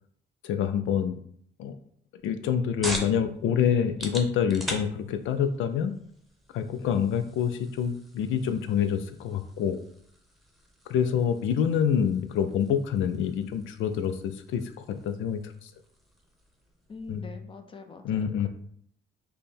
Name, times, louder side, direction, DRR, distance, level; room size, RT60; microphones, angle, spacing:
voice 1, 0.4-1.2 1.6-1.8 2.2-5.9 6.5-9.8 10.9-14.6 15.0-15.7 17.1-17.3 18.0-18.5, left 8 dB, 80° left, 9 dB, 0.4 m, -26 dB
sound 1, 2.2-17.3, equal, ahead, 0.9 m, -43 dB
voice 2, 16.9-18.5, left 3 dB, 25° left, 7 dB, 0.6 m, -44 dB
5.2 x 2.2 x 4.2 m, 0.64 s
cardioid pair, 90°, 20 cm